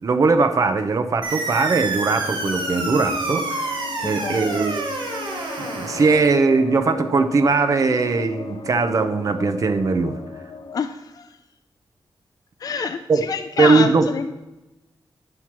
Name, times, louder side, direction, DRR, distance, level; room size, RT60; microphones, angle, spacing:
voice 1, 0.0-4.9 5.6-10.2 13.1-13.2 13.6-14.0, right 4 dB, 40° right, 8 dB, 0.6 m, -20 dB
sound 1, 1.2-6.2, right 3 dB, 70° right, 1.9 m, -28 dB
sound 2, 1.8-10.8, left 3 dB, 70° left, 0.8 m, -36 dB
voice 2, 4.0-4.6 10.7-11.4 12.6-14.3, left 6 dB, 50° left, 8 dB, 0.4 m, -27 dB
9.8 x 4.5 x 7.2 m, 1.0 s
wide cardioid pair, 180°, 8 cm